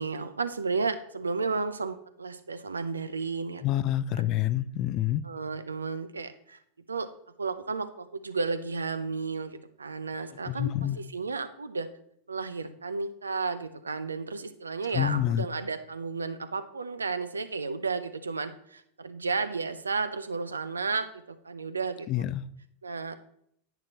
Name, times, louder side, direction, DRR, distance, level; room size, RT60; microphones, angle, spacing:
voice 1, 0.0-3.6 4.2-4.3 5.2-6.6 6.9-7.1 7.4-11.9 12.3-22.2 22.8-23.2, right 4 dB, 75° right, 11 dB, 0.6 m, -33 dB
voice 2, 3.6-5.2 10.5-11.0 14.9-15.5 22.1-22.4, left 12 dB, 40° left, 17 dB, 0.4 m, -27 dB
10.5 x 9.0 x 3.0 m, 0.70 s
figure-of-eight pair, 90°, 0 cm